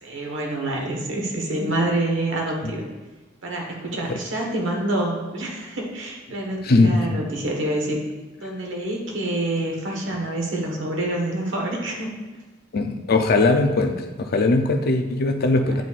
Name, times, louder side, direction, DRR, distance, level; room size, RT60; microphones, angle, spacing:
voice 1, 0.0-2.9 3.4-8.0 8.4-12.1, right 1 dB, 70° right, 0 dB, 1.3 m, -27 dB
voice 2, 6.6-7.2 12.7-13.9 14.2-15.8, left 2 dB, 50° left, 5 dB, 0.5 m, -20 dB
9.0 x 4.2 x 2.4 m, 1.2 s
head